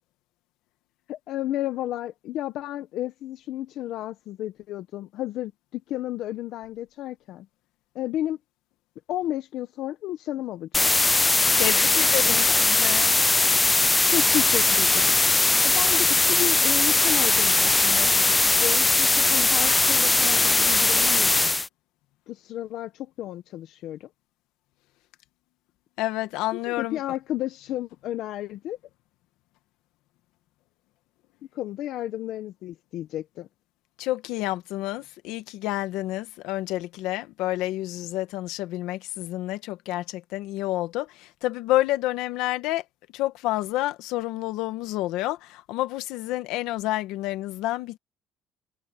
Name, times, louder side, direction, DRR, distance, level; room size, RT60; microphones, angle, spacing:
voice 1, 1.1-7.5 7.9-8.4 9.1-10.9 12.2-12.4 14.1-15.2 15.6-18.3 18.6-21.6 22.3-24.1 26.5-28.8 31.5-33.5, left 13 dB, 70° left, 1.1 m, -32 dB
sound 1, 10.7-21.7, left 2 dB, 15° left, 0.4 m, -20 dB
voice 2, 11.6-13.1 26.0-27.0 34.0-42.8 43.1-48.0, left 16 dB, 85° left, 1.5 m, -29 dB
cardioid pair, 120°, 0 cm